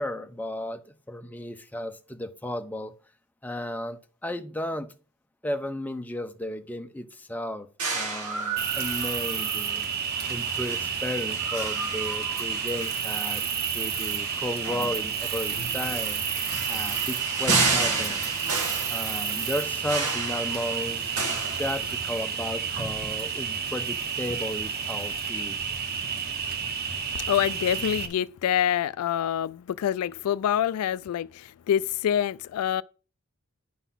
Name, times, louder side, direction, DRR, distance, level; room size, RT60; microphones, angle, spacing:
voice 1, 0.0-2.9 3.4-4.9 5.4-9.9 10.3-13.4 13.7-18.3 18.9-21.1 21.6-25.6, left 1 dB, 5° left, 0.7 m, -34 dB
sound 1, 7.8-22.3, right 4 dB, 85° right, 2.0 m, -32 dB
Cricket, 8.6-28.1, right 6 dB, 45° right, 1.0 m, -30 dB
voice 2, 27.3-32.8, left 10 dB, 80° left, 0.3 m, -26 dB
10.0 x 4.0 x 5.6 m
head